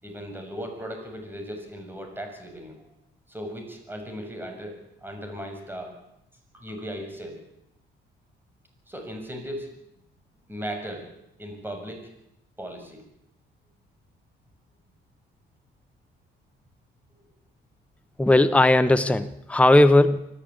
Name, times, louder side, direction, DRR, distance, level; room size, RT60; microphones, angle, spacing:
voice 1, 0.0-2.8 3.3-6.0 6.5-7.4 8.9-9.7 10.5-11.1 11.4-12.0 12.6-13.0, equal, 10° right, 4 dB, 6.9 m, -37 dB
voice 2, 18.2-20.3, left 1 dB, 5° left, 10 dB, 1.0 m, -18 dB
24.5 x 14.0 x 8.8 m, 0.83 s
cardioid pair, 90°, 20 cm